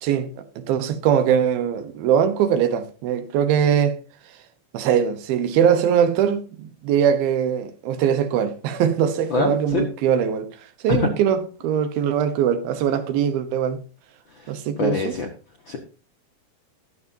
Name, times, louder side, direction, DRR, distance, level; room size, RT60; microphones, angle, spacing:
voice 1, 0.0-4.0 4.7-10.5 10.8-13.8 14.5-15.1, right 8 dB, 90° right, 2.9 m, -21 dB
voice 2, 9.3-9.9 10.9-11.1 14.3-15.3 15.6-15.8, left 4 dB, 70° left, 1.1 m, -25 dB
21.0 x 7.2 x 2.8 m
omnidirectional pair, 4.1 m